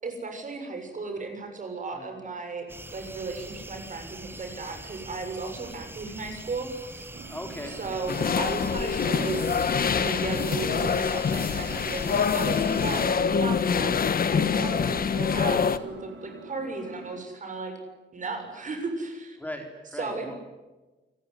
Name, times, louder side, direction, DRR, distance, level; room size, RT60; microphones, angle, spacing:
voice 1, 0.0-7.1 7.8-9.6 9.9-17.7 18.1-19.4 20.0-20.4, right 3 dB, 45° right, 5 dB, 7.0 m, -35 dB
sound 1, 2.7-13.1, right 2 dB, 10° right, 1.2 m, -43 dB
Engine, 7.1-17.1, right 3 dB, 85° right, 3.5 m, -46 dB
voice 2, 7.3-8.0 19.4-20.3, left 1 dB, 10° left, 3 dB, 3.9 m, -39 dB
sound 2, 8.1-15.8, left 6 dB, 50° left, 1.3 m, -25 dB
28.5 x 20.5 x 9.8 m, 1.2 s
wide cardioid pair, 150°, 19 cm